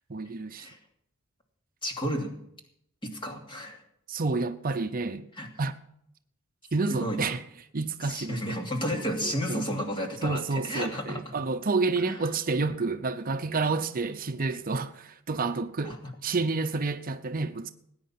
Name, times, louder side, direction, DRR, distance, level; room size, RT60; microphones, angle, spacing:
voice 1, 0.1-0.7 4.1-5.3 5.6-5.7 6.7-7.4 7.7-8.6 8.9-9.8 10.2-16.0 16.2-17.7, right 3 dB, 45° right, 0.7 m, -29 dB
voice 2, 1.8-2.3 3.0-3.8 5.4-5.5 6.9-7.3 8.0-11.3 12.1-12.2 15.8-16.1, equal, 25° left, 2.7 m, -32 dB
19.0 x 9.6 x 5.9 m
head